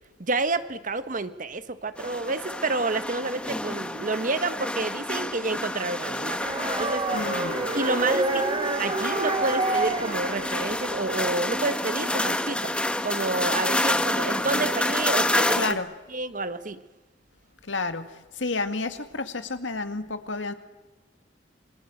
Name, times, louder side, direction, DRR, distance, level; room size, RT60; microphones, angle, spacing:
voice 1, 0.2-6.4 6.8-7.1 7.7-8.5 8.8-12.7 13.0-15.8 16.1-16.8, right 3 dB, 45° right, 11 dB, 1.4 m, -29 dB
sound 1, 2.0-15.7, left 1 dB, 5° left, 1.4 m, -29 dB
sound 2, 6.4-11.6, right 2 dB, 30° right, 4.8 m, -28 dB
voice 2, 7.1-7.7 15.6-15.9 17.6-20.5, left 3 dB, 85° left, 8 dB, 2.1 m, -30 dB
28.5 x 25.0 x 7.9 m, 1.1 s
head